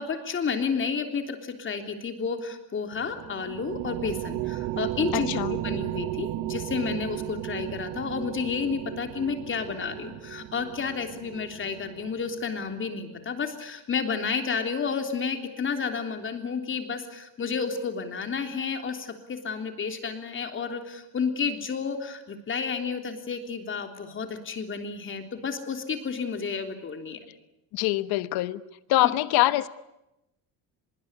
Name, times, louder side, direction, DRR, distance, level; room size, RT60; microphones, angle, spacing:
voice 1, 0.0-27.2, left 5 dB, 35° left, 3.5 m, -31 dB
sound 1, 2.9-12.7, right 15 dB, 80° right, 1.2 m, -35 dB
voice 2, 5.1-5.6 27.7-28.6 28.9-29.7, left 17 dB, 90° left, 1.3 m, -24 dB
25.0 x 22.0 x 9.8 m
cardioid pair, 140°, 37 cm